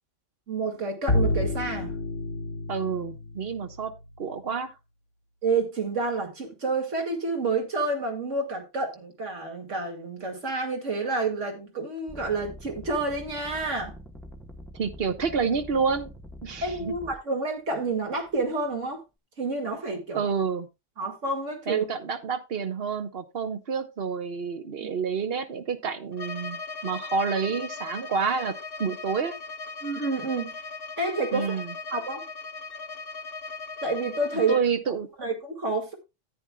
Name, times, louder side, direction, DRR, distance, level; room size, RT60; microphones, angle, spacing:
voice 1, 0.5-2.0 5.4-13.9 16.6-19.0 19.4-20.2 21.0-21.9 24.8-24.9 29.8-30.5 31.0-31.6 31.9-32.2 33.8-34.6 34.9-35.9, right 3 dB, 75° right, 2.5 m, -29 dB
Bowed string instrument, 1.1-4.1, left 2 dB, 80° left, 1.6 m, -29 dB
voice 2, 2.7-3.9 4.2-4.7 14.7-16.1 16.4-16.9 20.1-20.7 21.7-28.5 28.8-29.3 31.3-31.7 34.5-35.1, right 6 dB, 55° right, 1.2 m, -28 dB
sound 1, 12.1-17.2 17.9-18.5, equal, ahead, 0.8 m, -45 dB
Bowed string instrument 2, 26.1-34.7, left 4 dB, 55° left, 1.0 m, -38 dB
14.0 x 9.0 x 2.3 m
omnidirectional pair, 1.3 m